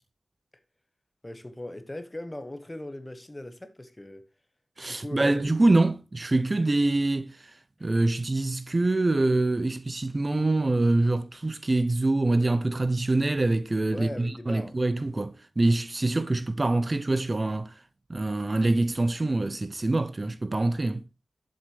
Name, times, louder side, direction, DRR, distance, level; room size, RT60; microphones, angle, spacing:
voice 1, 1.2-4.2 4.9-5.5 7.8-7.9 13.9-14.8, left 1 dB, 20° left, 1.2 m, -39 dB
voice 2, 4.8-17.8 18.1-21.0, right 2 dB, 30° right, 0.6 m, -25 dB
11.0 x 7.8 x 3.2 m
wide cardioid pair, 95°, 0 cm